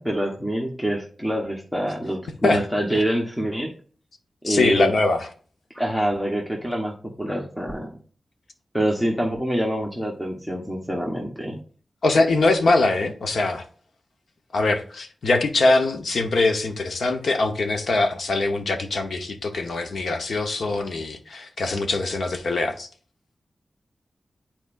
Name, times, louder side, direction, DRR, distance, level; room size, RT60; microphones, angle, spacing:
voice 1, 0.0-3.7 4.4-4.9 5.7-7.9 8.7-11.6, right 1 dB, 5° left, 1.0 m, -26 dB
voice 2, 4.4-5.3 12.0-13.6 14.5-22.9, left 2 dB, 75° left, 1.0 m, -22 dB
10.5 x 4.3 x 2.5 m
wide cardioid pair, 145°, 0 cm